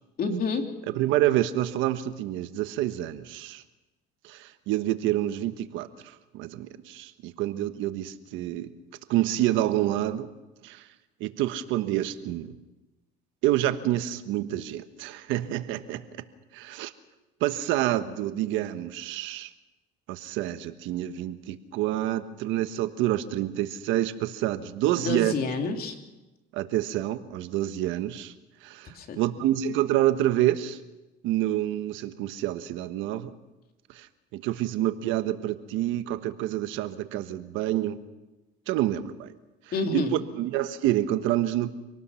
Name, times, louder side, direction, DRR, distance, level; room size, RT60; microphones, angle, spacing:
voice 1, 0.2-0.7 24.8-26.0 28.9-29.2 39.7-40.2, left 3 dB, 50° left, 4 dB, 3.1 m, -29 dB
voice 2, 1.0-3.6 4.2-8.7 9.1-10.3 10.6-10.9 11.2-12.5 13.4-16.0 16.5-16.9 17.4-19.5 20.1-25.3 26.5-28.3 28.6-30.8 31.2-33.3 33.9-34.1 34.3-38.0 38.7-39.3 39.9-40.1 40.3-41.7, right 13 dB, 75° right, 10 dB, 1.3 m, -28 dB
26.0 x 18.5 x 5.8 m, 1.1 s
supercardioid pair, 95°, 20 cm